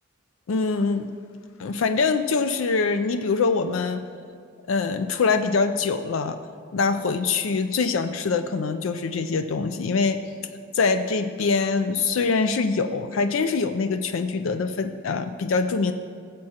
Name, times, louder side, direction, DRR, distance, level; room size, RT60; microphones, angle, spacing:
voice 1, 0.5-1.1 1.6-4.0 4.7-6.4 6.7-10.2 10.7-15.9, left 4 dB, 75° left, 8 dB, 0.4 m, -24 dB
18.5 x 7.5 x 2.9 m, 2.1 s
head